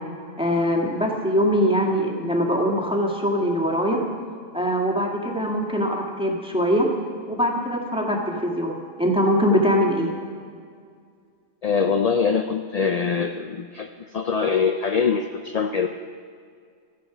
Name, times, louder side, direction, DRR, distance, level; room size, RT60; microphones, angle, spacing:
voice 1, 0.4-4.0 4.5-6.9 7.3-10.1, equal, 5° right, -1 dB, 2.0 m, -22 dB
voice 2, 11.6-15.9, left 6 dB, 50° left, 6 dB, 0.4 m, -23 dB
17.0 x 13.5 x 5.0 m, 2.2 s
omnidirectional pair, 1.3 m